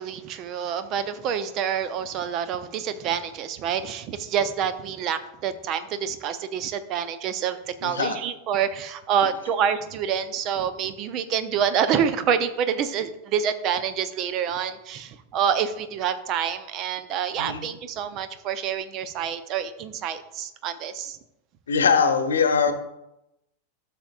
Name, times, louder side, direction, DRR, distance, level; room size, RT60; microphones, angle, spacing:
voice 1, 0.0-21.2, right 8 dB, 35° right, 11 dB, 0.7 m, -27 dB
voice 2, 7.8-8.2 17.4-17.6 21.7-22.7, left 5 dB, 65° left, 8 dB, 0.9 m, -21 dB
13.0 x 6.7 x 2.5 m, 0.86 s
figure-of-eight pair, 90°, 0 cm